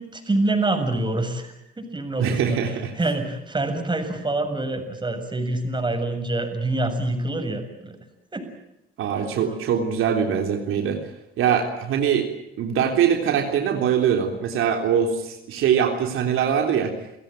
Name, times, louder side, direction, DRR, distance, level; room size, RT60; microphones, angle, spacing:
voice 1, 0.0-2.6 3.0-8.0 8.3-8.5, right 2 dB, 20° right, 6 dB, 7.2 m, -26 dB
voice 2, 2.2-2.9 9.0-11.0 11.4-12.3 12.6-16.9, right 8 dB, 75° right, 3 dB, 3.6 m, -22 dB
30.0 x 16.5 x 9.2 m, 0.90 s
cardioid pair, 85°, 21 cm